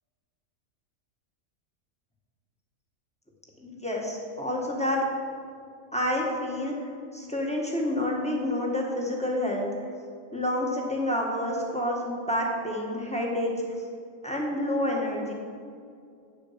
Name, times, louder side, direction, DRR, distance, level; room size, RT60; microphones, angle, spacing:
voice 1, 3.6-5.0 5.9-9.7 10.3-13.5 14.2-15.3, left 1 dB, 5° left, -2 dB, 1.3 m, -28 dB
8.8 x 7.0 x 5.7 m, 2.4 s
omnidirectional pair, 1.4 m